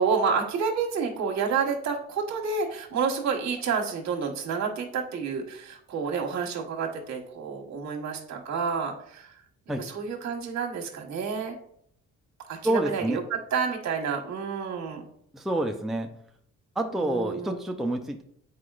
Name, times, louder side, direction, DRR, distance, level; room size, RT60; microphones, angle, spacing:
voice 1, 0.0-9.3 9.8-11.6 12.5-15.1 17.0-17.6, right 5 dB, 65° right, 1 dB, 1.5 m, -29 dB
voice 2, 12.6-13.2 15.3-16.1 16.8-18.2, right 1 dB, ahead, 3 dB, 0.5 m, -28 dB
8.2 x 4.7 x 2.5 m, 0.67 s
cardioid pair, 90°, 30 cm